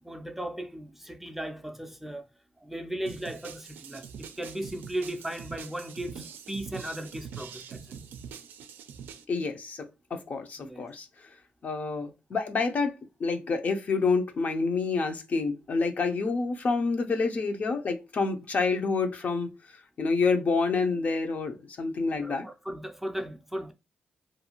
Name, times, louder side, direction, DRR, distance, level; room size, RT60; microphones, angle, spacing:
voice 1, 0.0-2.2 2.6-7.9 10.6-10.9 22.2-23.7, right 1 dB, 5° right, 0.4 m, -37 dB
sound 1, 3.1-9.2, right 7 dB, 85° right, 0.3 m, -44 dB
voice 2, 9.3-11.1 11.6-12.9 13.2-19.5 20.0-22.4, left 4 dB, 50° left, 0.6 m, -28 dB
2.5 x 2.3 x 2.9 m
cardioid pair, 85°, 3 cm